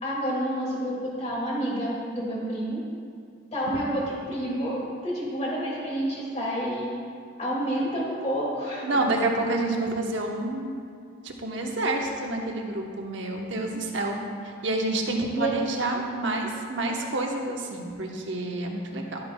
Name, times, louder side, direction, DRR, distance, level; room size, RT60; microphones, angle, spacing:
voice 1, 0.0-2.8 3.5-6.9 7.4-9.0 15.3-15.5, equal, 35° left, -5 dB, 2.1 m, -29 dB
voice 2, 8.8-10.8 11.2-14.2 14.4-19.2, right 2 dB, 70° right, 1 dB, 1.0 m, -28 dB
11.5 x 8.7 x 2.3 m, 2.3 s
head